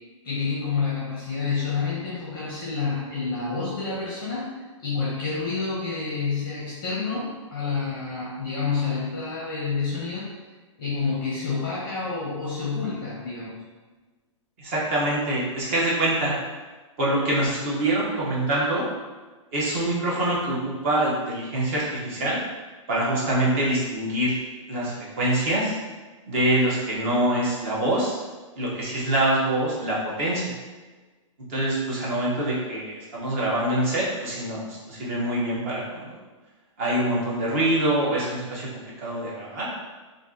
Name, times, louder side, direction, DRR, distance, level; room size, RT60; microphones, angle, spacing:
voice 1, 0.2-4.5 4.8-10.3 10.8-13.6, left 4 dB, 20° left, -7 dB, 0.7 m, -28 dB
voice 2, 14.6-16.3 17.0-18.9 19.5-22.4 22.9-24.3 24.7-25.8 26.3-28.2 28.6-30.5 31.5-36.2 36.8-38.7 39.0-39.7, right 1 dB, 25° right, -6 dB, 0.7 m, -25 dB
2.6 x 2.4 x 3.6 m, 1.3 s
hypercardioid pair, 170°, 17 cm